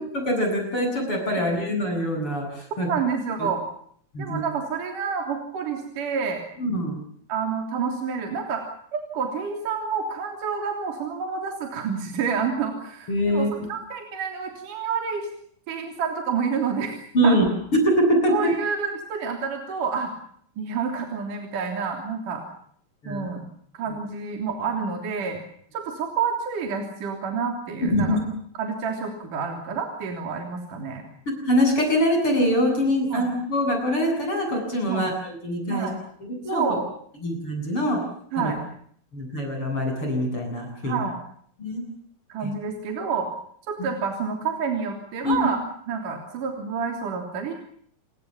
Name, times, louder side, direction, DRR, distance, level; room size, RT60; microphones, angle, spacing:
voice 1, 0.1-2.9 4.1-4.4 6.6-7.0 13.1-13.5 17.1-17.5 17.8-18.3 23.0-23.3 27.8-28.2 31.5-35.9 36.4-36.6 37.2-38.0 38.4-38.5 39.1-41.0 41.6-41.8 42.4-42.5 43.8-43.9 45.2-45.4, equal, 35° left, 4 dB, 9.0 m, -23 dB
voice 2, 2.9-3.6 4.2-6.4 7.3-15.3 15.7-17.4 18.3-20.1 20.6-22.4 23.1-23.4 23.7-25.4 25.7-28.2 28.6-31.0 33.1-33.3 34.9-35.1 35.7-36.0 36.5-36.9 38.3-38.6 40.8-41.2 42.3-43.3 43.7-45.6 45.9-47.5, right 6 dB, 65° right, 4 dB, 4.7 m, -28 dB
30.0 x 20.0 x 7.2 m, 0.63 s
omnidirectional pair, 4.0 m